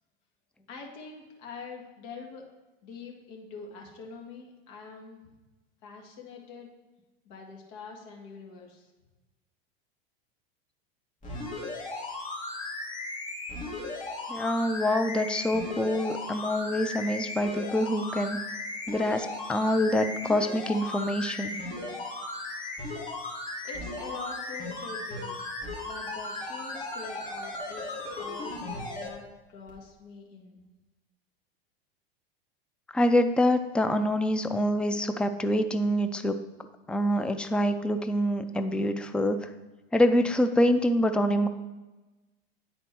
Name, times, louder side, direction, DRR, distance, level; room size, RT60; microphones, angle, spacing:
voice 1, 0.7-2.4 2.8-5.3 5.8-6.7 7.3-8.9 23.6-25.4 25.9-27.8 28.2-30.6, left 4 dB, 60° left, 0 dB, 1.9 m, -44 dB
sound 1, 11.2-29.1 29.7-29.8, left 2 dB, 25° left, 2.7 m, -36 dB
voice 2, 14.3-18.4 18.9-21.6 32.9-36.4 36.9-39.5 39.9-41.5, left 1 dB, 5° left, 9 dB, 0.4 m, -26 dB
9.8 x 4.3 x 4.5 m, 1.1 s
hypercardioid pair, 105°, 30 cm